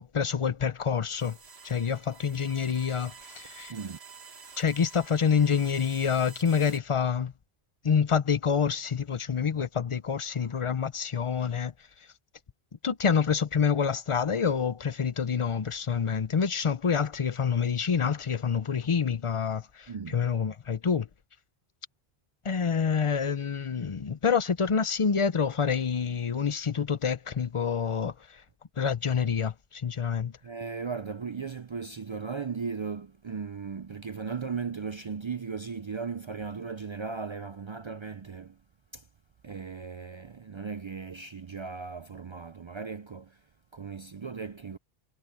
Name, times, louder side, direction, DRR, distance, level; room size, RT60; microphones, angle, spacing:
voice 1, 0.0-1.4 1.6-3.7 4.6-7.3 7.8-11.7 12.8-21.1 22.4-28.4 28.8-30.3, left 6 dB, 35° left, 0.6 m, -27 dB
Electromagnetic Mic on Laptop, 1.2-6.8, right 5 dB, 85° right, 1.8 m, -49 dB
voice 2, 30.4-38.6 38.9-39.0 39.4-43.4 43.7-44.8, right 5 dB, 50° right, 0.3 m, -37 dB
omnidirectional pair, 1.0 m